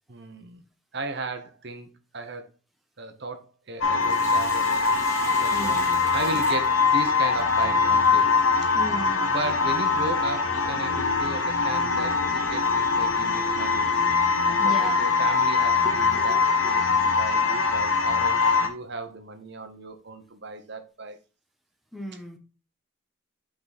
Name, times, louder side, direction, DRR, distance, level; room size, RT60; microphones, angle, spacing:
voice 1, 0.1-0.6 0.9-1.9 2.1-2.5 3.0-5.8 6.1-8.3 9.3-13.9 14.4-21.2, right 2 dB, 55° right, 1.1 m, -36 dB
sound 1, 3.8-18.7, left 4 dB, 80° left, 1.3 m, -23 dB
Sink (filling or washing), 3.8-7.4 9.8-9.9 11.8-12.0 12.5-12.6 13.4-13.5 14.2-14.3 15.0-16.9, left 1 dB, 15° left, 2.0 m, -41 dB
voice 2, 5.5-6.7 8.7-9.3 14.6-15.1 21.9-22.4, equal, ahead, 1.1 m, -36 dB
6.1 x 5.0 x 4.1 m
head